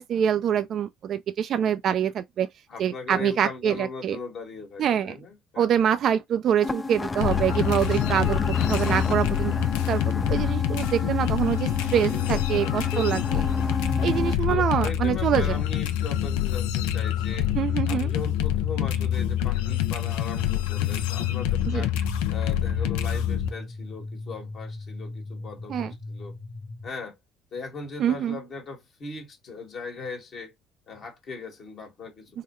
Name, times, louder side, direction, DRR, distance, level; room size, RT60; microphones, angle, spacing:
voice 1, 0.0-2.5 2.8-4.2 4.8-5.2 5.6-9.5 9.9-13.5 14.0-15.6 17.6-18.1 21.7-21.8 25.7-25.9 28.0-28.4, right 9 dB, 55° right, 0.3 m, -25 dB
voice 2, 2.7-5.6 7.0-7.1 7.4-7.6 12.0-13.0 14.5-17.5 17.9-21.9 22.3-26.4 26.8-27.2 27.5-30.5 30.9-32.4, left 4 dB, 55° left, 1.4 m, -39 dB
sound 1, 6.6-14.3, left 3 dB, 25° left, 0.3 m, -31 dB
sound 2, 7.2-23.5, left 11 dB, 85° left, 0.5 m, -26 dB
sound 3, 7.3-26.9, left 2 dB, 5° left, 0.9 m, -39 dB
3.7 x 2.2 x 3.0 m
supercardioid pair, 75°, 0 cm